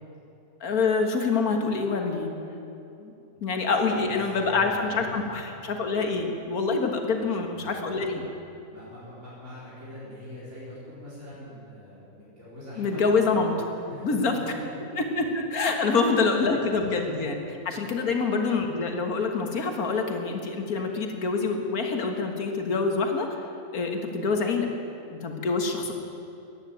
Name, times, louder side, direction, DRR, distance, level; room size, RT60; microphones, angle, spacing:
voice 1, 0.6-2.3 3.0-3.1 3.4-8.2 12.8-13.7 14.0-14.3 15.0-17.4 17.7-23.3 23.7-24.7 25.1-25.9, left 4 dB, 75° left, 4 dB, 2.0 m, -26 dB
voice 2, 3.9-5.2 7.1-8.3 8.7-13.4 13.9-14.4 14.7-15.0 15.9-16.0, equal, 50° right, -10 dB, 4.8 m, -43 dB
14.5 x 10.0 x 9.1 m, 2.8 s
omnidirectional pair, 1.6 m